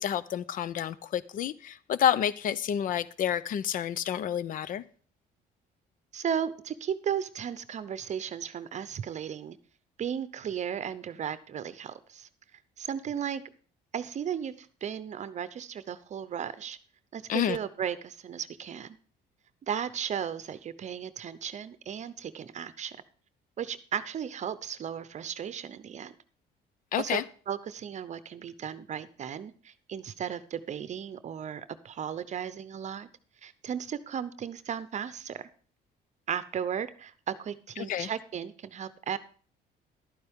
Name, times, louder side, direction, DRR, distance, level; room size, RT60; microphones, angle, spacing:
voice 1, 0.0-4.8 17.3-17.6 26.9-27.2 37.9-38.1, left 9 dB, 55° left, 18 dB, 0.6 m, -29 dB
voice 2, 6.1-9.6 10.0-12.3 12.8-13.4 13.9-16.8 17.1-19.0 19.6-23.0 23.6-26.1 27.0-33.1 33.4-35.5 36.3-39.2, right 8 dB, 45° right, 14 dB, 0.7 m, -35 dB
12.0 x 9.5 x 3.6 m, 0.42 s
cardioid pair, 110°, 17 cm